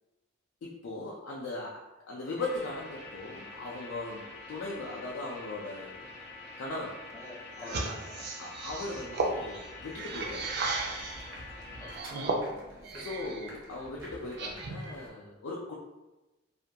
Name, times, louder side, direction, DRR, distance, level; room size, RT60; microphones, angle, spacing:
voice 1, 0.6-6.1 6.6-7.0 7.6-7.9 8.4-10.5 13.0-15.7, left 2 dB, 85° left, -4 dB, 0.4 m, -39 dB
sound 1, 2.4-12.0, left 2 dB, 55° left, 0.7 m, -46 dB
voice 2, 7.1-8.2 11.8-12.2 12.8-13.5, left 1 dB, 15° left, -3 dB, 0.4 m, -49 dB
sound 2, 7.6-11.3 11.8-13.5 13.9-14.9, right 3 dB, 60° right, 0.4 m, -35 dB
sound 3, 10.0-15.1, right 1 dB, 75° right, 0.8 m, -50 dB
2.5 x 2.2 x 2.6 m, 1.0 s
head